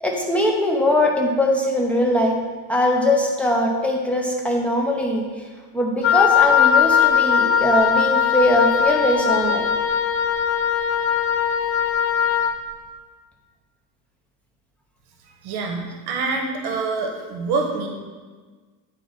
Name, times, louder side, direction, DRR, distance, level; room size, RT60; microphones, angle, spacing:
voice 1, 0.0-2.4 2.7-5.5 5.7-9.7, left 1 dB, 5° left, 0 dB, 0.9 m, -21 dB
Wind instrument woodwind instrument, 6.0-12.6, left 8 dB, 75° left, 0.7 m, -19 dB
voice 2, 15.3-17.9, right 4 dB, 55° right, 3 dB, 1.1 m, -26 dB
9.1 x 4.2 x 4.2 m, 1.4 s
cardioid pair, 130°, 47 cm